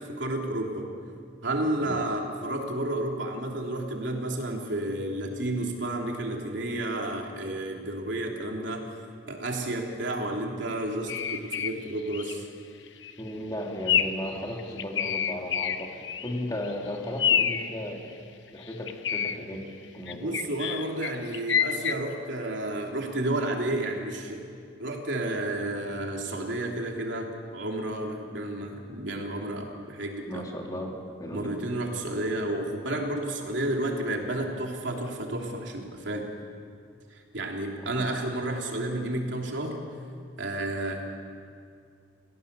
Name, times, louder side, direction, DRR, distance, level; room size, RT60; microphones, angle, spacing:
voice 1, 0.1-0.9 1.4-8.9 9.3-12.5 20.1-24.4 24.8-30.5 31.3-36.3 37.1-39.8 40.4-41.0, right 1 dB, 70° right, 0 dB, 3.3 m, -31 dB
sound 1, 11.1-11.8 12.1-12.4 12.9-13.1 13.9-14.3 14.6-16.4 16.6-16.7 17.2-17.7 18.6-19.4 20.1-21.9, left 8 dB, 65° left, 1.0 m, -27 dB
voice 2, 13.2-18.2 18.5-19.7 19.9-20.4 30.3-31.5 37.8-38.0, left 1 dB, 20° left, 0 dB, 2.9 m, -35 dB
30.0 x 18.0 x 6.9 m, 2.3 s
head